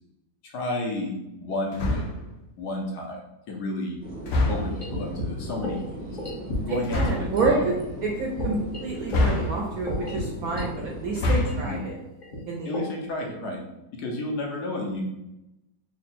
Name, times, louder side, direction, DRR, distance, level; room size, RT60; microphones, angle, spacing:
voice 1, 0.4-2.1 2.6-3.2 3.5-4.0 4.5-6.1 6.6-7.6 11.5-11.8 12.6-13.6 13.9-15.0, left 2 dB, 65° left, 0 dB, 1.2 m, -31 dB
sound 1, 1.7-2.3 4.2-4.9 6.8-7.3 9.1-9.9 11.0-11.7, left 2 dB, 85° left, 0.5 m, -25 dB
sound 2, 4.0-11.4, right 1 dB, 10° right, 0.7 m, -38 dB
sound 3, 4.8-7.5 7.8-7.9 8.4-10.7 11.0-11.1 11.5-13.1, left 1 dB, 40° left, 0.7 m, -33 dB
voice 2, 6.7-7.7 8.0-11.9 12.5-12.7, right 3 dB, 75° right, -1 dB, 0.8 m, -28 dB
3.6 x 2.2 x 4.2 m, 0.90 s
omnidirectional pair, 2.0 m